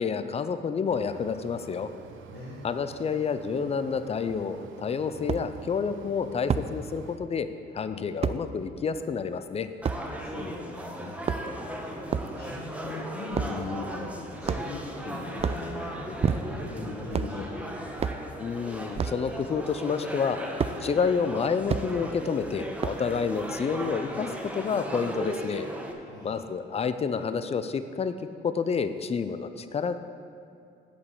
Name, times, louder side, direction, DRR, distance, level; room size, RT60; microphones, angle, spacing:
voice 1, 0.0-1.9 2.6-7.5 7.7-9.7 18.4-20.4 20.8-25.7 26.2-28.1 28.4-29.9, left 6 dB, 30° left, 11 dB, 0.5 m, -29 dB
Mechanisms, 0.9-7.2, right 7 dB, 80° right, 0.6 m, -47 dB
voice 2, 2.3-2.7 7.9-8.0 10.2-11.5 11.8-17.7 26.1-26.5, left 3 dB, 60° left, -4 dB, 1.4 m, -40 dB
sound 1, 4.3-4.4 5.3-5.5 6.5-6.7 8.2-8.4 9.8-10.0 11.1-11.6 12.1-12.3 13.3-13.6 14.4-14.9 15.3-15.7 16.2-16.7 17.1-17.4 18.0-18.2 18.9-19.2 20.6-20.8 21.7-21.9 22.8-23.1, right 6 dB, 30° right, 0.4 m, -28 dB
sound 2, 9.8-25.9, right 1 dB, 5° right, 1.0 m, -37 dB
8.2 x 5.3 x 7.1 m, 2.6 s
cardioid pair, 90°, 20 cm